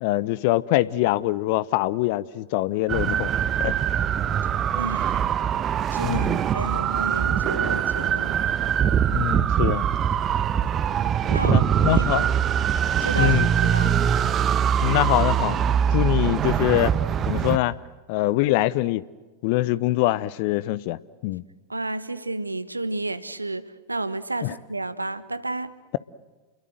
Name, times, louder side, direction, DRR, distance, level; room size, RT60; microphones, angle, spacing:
voice 1, 0.0-3.3 3.6-3.8 6.0-6.4 9.1-9.9 11.5-12.2 13.2-13.5 13.9-14.1 14.8-15.6 15.9-16.9 17.3-17.8 18.1-19.0 19.4-21.0 21.2-21.4 24.4-24.5, left 17 dB, 45° left, 0.8 m, -24 dB
sound 1, 2.9-17.6, right 9 dB, 30° right, 1.3 m, -23 dB
voice 2, 4.7-5.2 5.9-6.3 6.5-8.4 11.3-12.3 13.0-13.4 13.7-14.0 21.7-25.7, right 2 dB, 80° right, 1.4 m, -31 dB
30.0 x 22.5 x 7.8 m
figure-of-eight pair, 90°, 0 cm